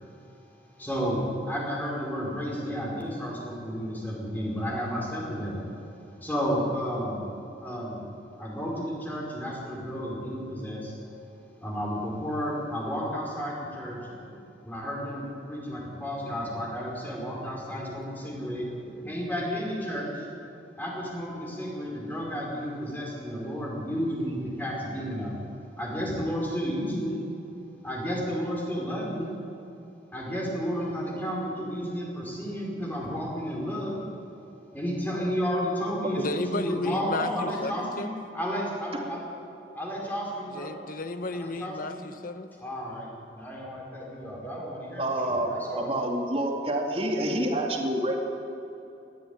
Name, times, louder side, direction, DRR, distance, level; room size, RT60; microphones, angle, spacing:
voice 1, 0.8-5.6 6.2-7.3 7.6-8.0 8.4-11.0 11.6-14.2 14.4-20.3 20.8-25.4 25.8-27.2 27.8-29.3 30.1-34.1 34.7-38.1 38.3-39.2 39.7-40.7 41.3-42.0 42.6-45.9, equal, 10° left, -3 dB, 5.0 m, -32 dB
voice 2, 36.2-38.1 40.5-42.5, left 2 dB, 50° left, 10 dB, 1.2 m, -33 dB
voice 3, 45.0-45.5 45.8-48.2, right 1 dB, 35° right, 2 dB, 2.6 m, -27 dB
19.5 x 14.0 x 9.7 m, 2.8 s
head